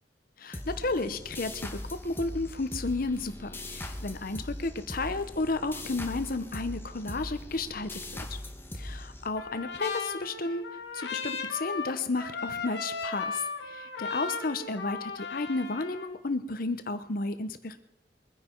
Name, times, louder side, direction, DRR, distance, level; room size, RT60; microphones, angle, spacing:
voice 1, 0.4-8.4 8.7-10.7 10.9-17.8, left 3 dB, 55° left, 10 dB, 0.9 m, -32 dB
sound 1, 0.5-9.8, left 1 dB, 15° left, 1.2 m, -40 dB
Trumpet, 9.4-16.1, left 5 dB, 70° left, 2.0 m, -36 dB
23.0 x 10.0 x 4.6 m, 0.86 s
head